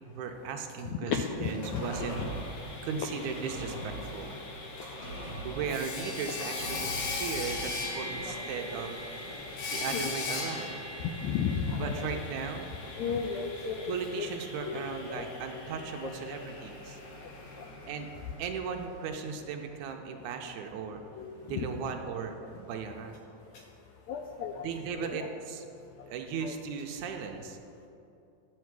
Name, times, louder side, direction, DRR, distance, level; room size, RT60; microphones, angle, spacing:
voice 1, 0.1-2.2 2.8-4.3 5.4-9.0 9.7-10.7 11.8-13.1 13.9-17.0 17.9-18.1 18.4-21.0 21.4-23.2 24.6-25.6 26.1-27.6, right 6 dB, 80° right, 4 dB, 2.0 m, -37 dB
voice 2, 0.8-1.9 5.1-5.2 7.4-7.5 9.9-10.1 11.2-12.1 13.0-14.3 14.6-14.8 15.1-15.2 21.1-21.7 24.1-24.7 25.1-25.3 26.4-26.5, left 7 dB, 90° left, 3 dB, 1.6 m, -33 dB
Sawing, 1.3-19.1, left 3 dB, 65° left, 2.3 m, -40 dB
sound 1, 1.6-10.1 10.4-10.5, right 1 dB, 40° left, 2.1 m, -42 dB
11.0 x 7.5 x 4.6 m, 2.7 s
omnidirectional pair, 3.7 m